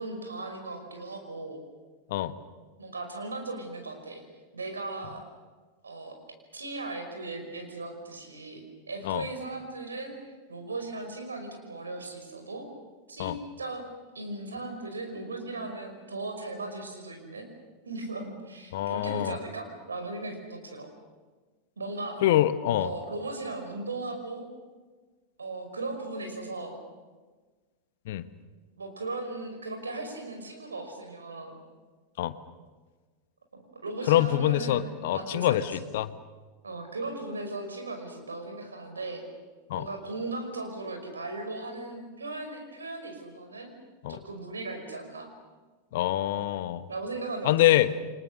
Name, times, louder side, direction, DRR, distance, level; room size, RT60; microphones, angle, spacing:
voice 1, 0.0-1.6 2.8-4.2 4.5-5.2 5.8-6.2 6.5-12.7 13.1-13.8 14.1-17.4 17.8-20.9 21.8-22.2 22.8-24.5 25.4-26.8 28.8-31.6 33.5-35.9 36.6-39.2 39.7-43.7 44.1-45.3 46.9-47.7, right 2 dB, 75° right, 5 dB, 5.5 m, -37 dB
voice 2, 18.7-19.4 22.2-22.9 28.1-28.2 32.2-32.4 34.1-36.1 39.7-39.9 44.0-44.2 45.9-46.8 47.4-47.9, left 13 dB, 55° left, 13 dB, 1.2 m, -25 dB
29.5 x 25.0 x 6.6 m, 1.4 s
figure-of-eight pair, 90°, 0 cm